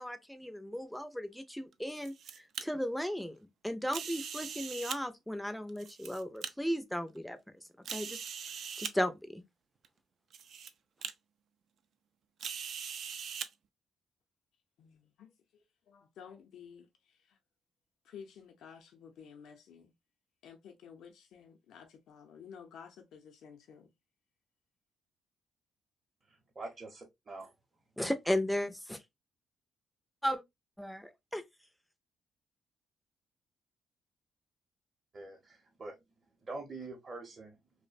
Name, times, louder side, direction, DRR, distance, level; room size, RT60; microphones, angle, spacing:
voice 1, 0.0-2.1 2.6-3.4 3.6-7.4 7.9-8.2 8.8-9.4 28.0-29.0 30.2-30.4 30.8-31.4, equal, 5° left, 0.4 m, -35 dB
sound 1, 1.7-2.6 3.9-5.0 5.7-6.5 7.1-7.2 7.8-8.9 9.8-9.9 10.3-10.7 11.0-11.1 12.4-13.5, right 7 dB, 65° right, 0.3 m, -41 dB
voice 2, 14.8-15.3 15.9-17.4 18.0-19.9 20.4-23.9, left 7 dB, 75° left, 0.5 m, -53 dB
voice 3, 26.6-27.5 35.1-35.9 36.5-37.5, right 3 dB, 35° right, 0.7 m, -44 dB
2.6 x 2.1 x 2.4 m
cardioid pair, 90°, 0 cm